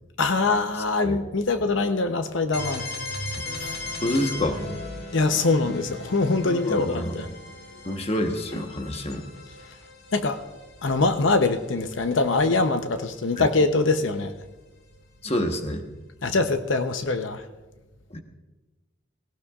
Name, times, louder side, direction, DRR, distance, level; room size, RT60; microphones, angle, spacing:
voice 1, 0.2-2.8 3.6-3.7 5.1-7.3 10.1-10.4 10.8-14.3 16.2-17.4, left 3 dB, 85° left, 7 dB, 0.8 m, -23 dB
sound 1, 2.5-12.3, left 2 dB, 55° left, 2.0 m, -38 dB
voice 2, 4.0-4.6 6.4-7.2 7.8-9.3 13.4-13.5 15.2-15.8 18.1-18.2, left 1 dB, 35° left, 5 dB, 1.2 m, -27 dB
19.0 x 17.5 x 2.5 m, 1.2 s
head